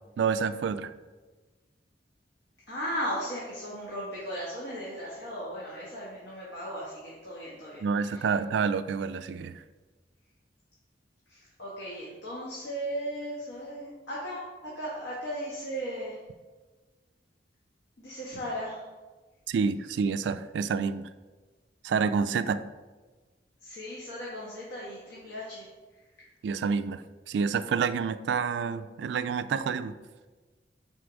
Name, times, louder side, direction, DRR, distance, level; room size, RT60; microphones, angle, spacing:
voice 1, 0.2-0.9 7.8-9.6 19.5-21.1 21.8-22.6 26.4-29.9, right 5 dB, 70° right, 13 dB, 0.3 m, -28 dB
voice 2, 2.7-8.3 11.3-16.2 18.0-18.8 23.6-26.3, equal, 80° left, -6 dB, 1.4 m, -37 dB
4.6 x 4.1 x 5.1 m, 1.3 s
head